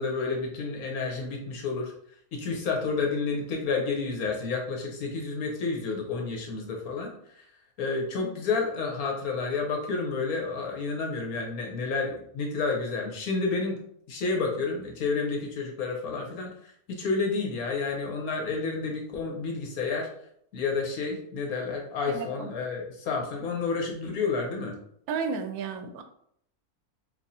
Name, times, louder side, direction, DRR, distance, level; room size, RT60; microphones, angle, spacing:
voice 1, 0.0-1.9 2.3-7.5 7.8-13.8 14.1-20.1 20.5-24.8, left 4 dB, 75° left, 1 dB, 1.3 m, -30 dB
voice 2, 22.1-22.5 25.1-26.0, right 5 dB, 80° right, 6 dB, 1.0 m, -33 dB
4.6 x 2.4 x 2.7 m, 0.68 s
omnidirectional pair, 1.6 m